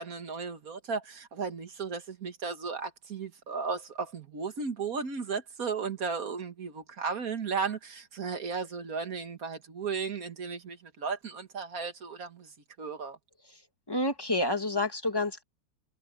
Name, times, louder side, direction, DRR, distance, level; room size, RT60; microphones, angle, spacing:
voice 1, 0.0-12.5 12.8-13.2, right 5 dB, 45° right, 1.9 m, -35 dB
voice 2, 13.9-15.4, left 2 dB, 10° left, 2.0 m, -29 dB
omnidirectional pair, 2.2 m